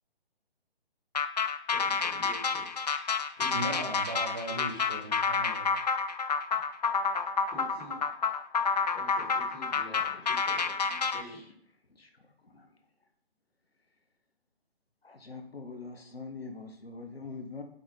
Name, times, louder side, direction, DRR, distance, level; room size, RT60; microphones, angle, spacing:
sound 1, 1.1-11.2, left 5 dB, 40° left, 0.5 m, -29 dB
voice 1, 1.7-2.8 3.4-3.9 7.5-8.1 8.9-10.8 11.1-11.4, left 2 dB, 15° left, -4 dB, 2.4 m, -47 dB
voice 2, 3.5-5.8, right 1 dB, 20° right, 0 dB, 0.7 m, -38 dB
voice 3, 10.9-11.4 11.9-12.1 12.4-12.7 15.0-17.6, left 4 dB, 70° left, 4 dB, 1.4 m, -44 dB
8.4 x 4.0 x 5.1 m, 0.68 s
figure-of-eight pair, 145°, 31 cm